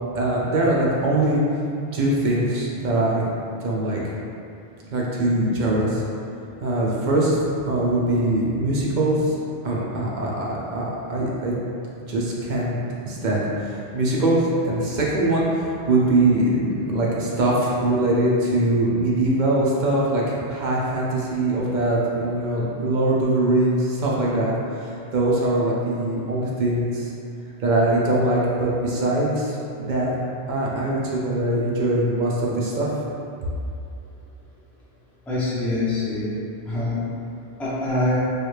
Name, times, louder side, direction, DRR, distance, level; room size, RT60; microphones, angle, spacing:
voice 1, 0.1-1.4 1.9-3.3 3.6-4.0 4.9-6.0 6.6-7.4 7.7-9.3 9.6-11.6 12.1-12.8 13.1-14.4 14.6-27.1 27.6-30.1 30.5-32.9, right 1 dB, 55° right, -4 dB, 0.6 m, -22 dB
voice 2, 35.3-36.3 36.7-37.0 37.6-38.2, left 2 dB, ahead, -9 dB, 0.4 m, -24 dB
3.2 x 2.3 x 3.1 m, 2.6 s
omnidirectional pair, 1.2 m